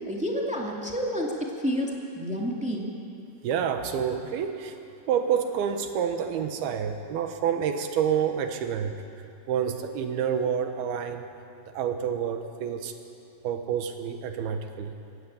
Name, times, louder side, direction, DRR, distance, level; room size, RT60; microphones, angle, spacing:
voice 1, 0.1-2.9, equal, 5° right, -1 dB, 0.7 m, -29 dB
voice 2, 3.4-4.8 5.1-9.0 9.5-11.3 11.6-12.9 13.4-14.9, right 8 dB, 75° right, 7 dB, 3.1 m, -28 dB
22.0 x 16.0 x 8.8 m, 2.6 s
omnidirectional pair, 4.7 m